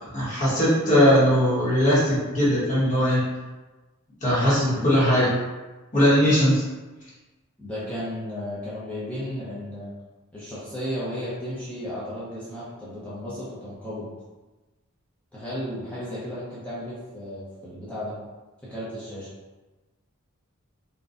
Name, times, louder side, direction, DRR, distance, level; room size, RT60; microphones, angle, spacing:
voice 1, 0.1-3.3 4.2-5.4 5.9-6.6, equal, 35° left, -10 dB, 1.1 m, -20 dB
voice 2, 7.6-9.9 10.3-14.1 15.3-18.1 18.7-19.3, equal, 5° left, -10 dB, 0.7 m, -34 dB
3.9 x 2.3 x 2.4 m, 1.2 s
head